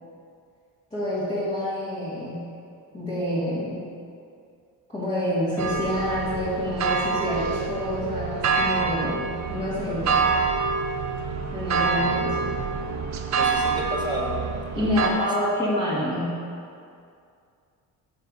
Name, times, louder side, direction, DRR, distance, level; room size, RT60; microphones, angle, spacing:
voice 1, 0.9-2.4 2.9-3.8 4.9-10.3 11.5-12.5 14.7-16.4, left 1 dB, 15° left, -12 dB, 1.8 m, -27 dB
sound 1, 5.6-15.1, right 5 dB, 45° right, 0.6 m, -26 dB
voice 2, 13.3-14.4 14.8-15.2, equal, 10° right, -3 dB, 1.0 m, -32 dB
13.0 x 6.9 x 2.7 m, 2.4 s
cardioid pair, 180°, 39 cm